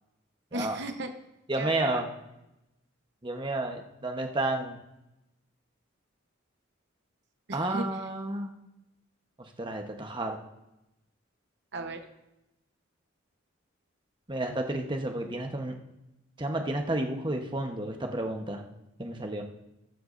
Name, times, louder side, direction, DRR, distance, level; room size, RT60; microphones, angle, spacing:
voice 1, 0.5-1.1 1.6-2.0 7.5-7.9 11.7-12.0, right 2 dB, 55° right, 6 dB, 1.0 m, -36 dB
voice 2, 1.5-2.1 3.2-4.8 7.5-8.5 9.4-10.4 14.3-15.8 16.4-18.6 19.0-19.4, right 2 dB, 25° right, 3 dB, 1.0 m, -31 dB
21.0 x 8.0 x 2.6 m, 0.91 s
head